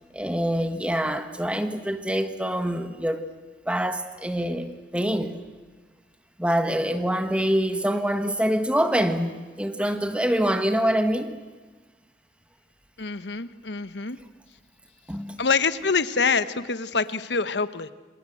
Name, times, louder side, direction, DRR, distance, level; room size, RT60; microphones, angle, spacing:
voice 1, 0.1-3.2 3.7-5.4 6.4-11.4 15.1-15.4, equal, 5° right, 8 dB, 1.5 m, -25 dB
voice 2, 13.0-14.2 15.4-17.9, left 5 dB, 85° left, 13 dB, 1.1 m, -25 dB
27.0 x 26.0 x 7.9 m, 1.3 s
head